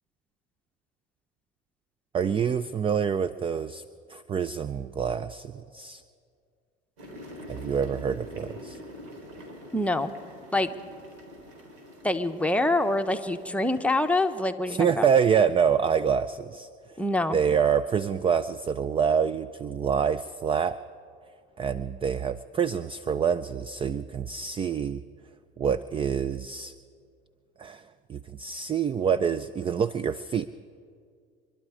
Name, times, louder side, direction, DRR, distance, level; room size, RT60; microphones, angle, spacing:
voice 1, 2.1-3.8 4.1-6.0 7.5-8.8 14.7-16.7 17.3-20.8 21.6-25.0 25.6-26.7 27.6-27.8 28.1-30.5, right 7 dB, 20° right, 16 dB, 0.3 m, -26 dB
sound 1, 7.0-14.5, left 1 dB, 70° right, 3.9 m, -46 dB
voice 2, 9.7-10.1 10.5-10.7 12.0-15.1 17.0-17.4, left 2 dB, 5° left, 6 dB, 0.9 m, -25 dB
24.5 x 11.5 x 4.9 m, 2.2 s
hypercardioid pair, 85°, 32 cm